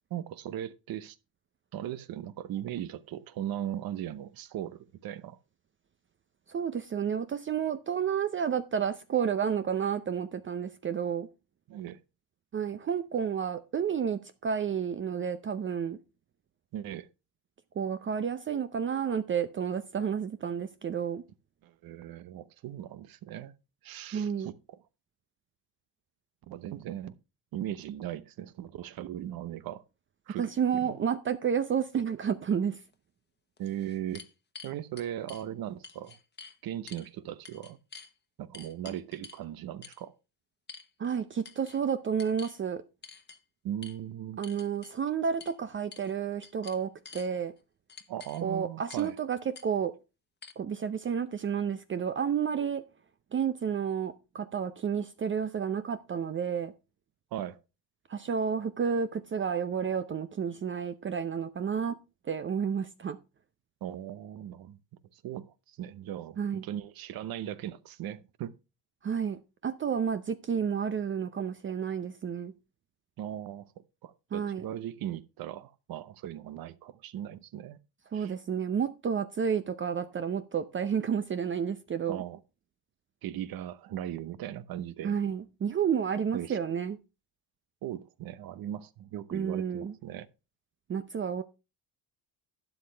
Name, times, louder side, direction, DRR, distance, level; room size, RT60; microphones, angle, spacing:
voice 1, 0.1-1.2 1.7-5.4 11.7-12.0 16.7-17.1 21.6-23.5 23.8-24.8 26.5-27.2 27.5-29.8 30.3-31.0 33.6-34.3 34.6-36.2 36.6-37.8 38.4-40.1 43.6-44.4 48.1-49.1 57.3-57.6 63.8-64.8 65.1-68.6 73.2-77.8 78.1-78.3 82.1-82.4 83.2-85.2 86.3-86.6 87.8-90.3, right 11 dB, 55° right, 0.9 m, -38 dB
voice 2, 6.5-11.3 12.5-16.0 17.8-21.2 24.1-24.5 30.4-32.8 41.0-42.8 44.4-47.5 48.4-49.9 50.6-52.9 53.3-56.7 58.1-62.0 62.2-63.2 66.4-66.6 69.0-72.5 74.3-74.6 78.1-82.2 85.0-87.0 89.3-89.9 90.9-91.4, right 7 dB, 30° right, 0.6 m, -31 dB
sound 1, 32.9-33.0 33.6-35.4 35.8-36.6 36.9-37.1 37.4-38.1 38.5-39.4 39.8-40.0 40.7-41.2 41.4-41.8 42.2-42.6 43.0-43.4 43.8-44.0 44.4-44.9 45.4-45.6 45.9-46.1 46.4-47.3 47.9-48.4 48.9-49.1 49.5-49.7 50.4-50.5, left 5 dB, 25° left, 1.2 m, -48 dB
12.0 x 8.6 x 3.3 m
cardioid pair, 125°, 42 cm